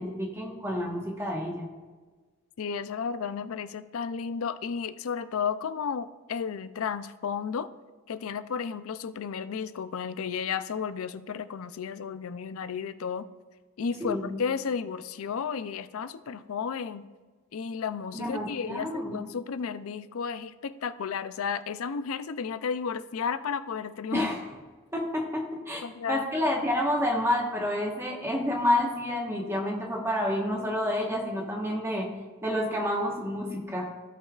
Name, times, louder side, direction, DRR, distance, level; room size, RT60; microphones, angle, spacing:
voice 1, 0.0-1.7 14.0-14.3 18.1-19.2 24.1-24.4 24.9-32.1 32.4-33.9, left 1 dB, 10° right, -1 dB, 1.2 m, -29 dB
voice 2, 2.6-7.7 8.1-13.3 13.8-17.1 17.5-24.3 25.8-26.2, left 6 dB, 75° left, 13 dB, 0.4 m, -33 dB
15.5 x 5.5 x 2.4 m, 1.4 s
head